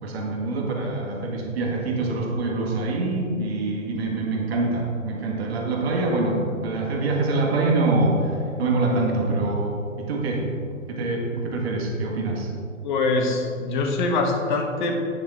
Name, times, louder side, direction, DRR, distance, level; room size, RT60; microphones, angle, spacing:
voice 1, 0.0-10.5 10.9-12.5, right 2 dB, 50° right, -1 dB, 1.7 m, -25 dB
voice 2, 12.8-15.0, left 3 dB, 35° left, 3 dB, 1.1 m, -24 dB
9.0 x 6.6 x 3.6 m, 2.4 s
figure-of-eight pair, 130°, 41 cm